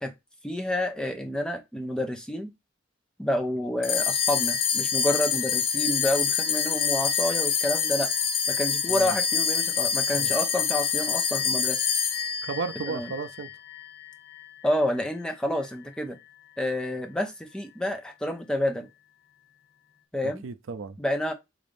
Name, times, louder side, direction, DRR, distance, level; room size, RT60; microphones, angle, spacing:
voice 1, 0.4-2.5 3.2-8.1 8.5-11.8 12.9-13.1 14.6-16.2 16.6-18.9 20.1-20.4 21.0-21.3, left 1 dB, 5° left, 0.4 m, -29 dB
sound 1, 3.8-14.5, left 7 dB, 80° left, 0.7 m, -26 dB
voice 2, 12.4-13.5 20.4-21.0, right 4 dB, 75° right, 0.4 m, -34 dB
3.7 x 2.6 x 3.4 m
head